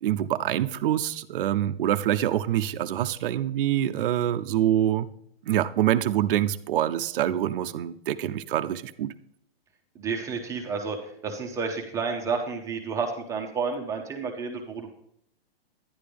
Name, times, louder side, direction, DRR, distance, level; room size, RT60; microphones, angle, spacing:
voice 1, 0.0-5.1 5.5-9.1, right 11 dB, 60° right, 9 dB, 0.6 m, -25 dB
voice 2, 9.9-14.9, right 5 dB, 10° right, 2 dB, 0.7 m, -31 dB
11.5 x 10.5 x 3.4 m, 0.71 s
hypercardioid pair, 155°, 30 cm